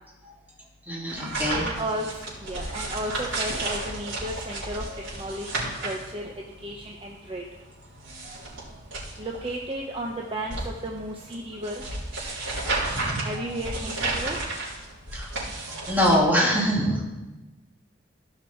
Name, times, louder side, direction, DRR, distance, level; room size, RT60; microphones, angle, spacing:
voice 1, 0.9-1.7 8.2-8.5 12.6-13.1 15.1-15.3 15.9-17.0, equal, 10° right, -4 dB, 2.6 m, -24 dB
sound 1, 1.1-16.2, right 2 dB, 80° right, 4.2 m, -33 dB
voice 2, 1.5-4.8 5.1-6.3 6.6-7.4 9.2-11.8 13.2-14.4, right 1 dB, 30° right, 0 dB, 0.8 m, -33 dB
14.5 x 6.0 x 4.5 m, 1.1 s
head